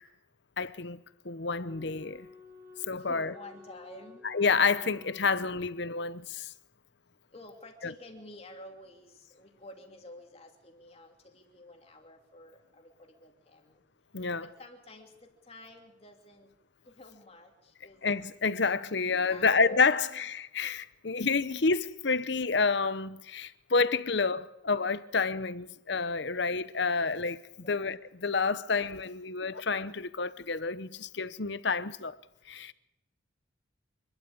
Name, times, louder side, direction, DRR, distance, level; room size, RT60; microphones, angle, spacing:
voice 1, 0.6-2.3 2.9-3.3 4.2-6.5 7.8-7.9 14.1-14.5 18.0-32.2 32.5-32.7, left 4 dB, 55° left, 0.8 m, -29 dB
Wind instrument woodwind instrument, 1.6-5.9, left 3 dB, 10° right, 1.2 m, -52 dB
voice 2, 3.1-4.2 7.3-13.7 14.4-16.5 16.9-18.0 19.2-20.2 27.5-27.8, left 2 dB, 30° left, 2.8 m, -50 dB
26.0 x 12.5 x 8.6 m
head